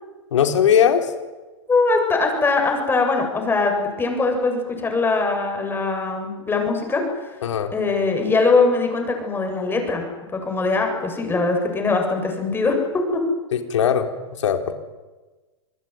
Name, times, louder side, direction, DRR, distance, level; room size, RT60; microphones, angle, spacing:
voice 1, 0.3-1.1 7.4-7.7 13.5-14.1 14.4-14.8, left 8 dB, 75° left, 6 dB, 4.1 m, -19 dB
voice 2, 1.7-7.4 7.7-10.0 10.3-13.2, left 3 dB, 15° left, 3 dB, 7.7 m, -21 dB
27.0 x 20.5 x 9.7 m, 1.2 s
hypercardioid pair, 130°, 16 cm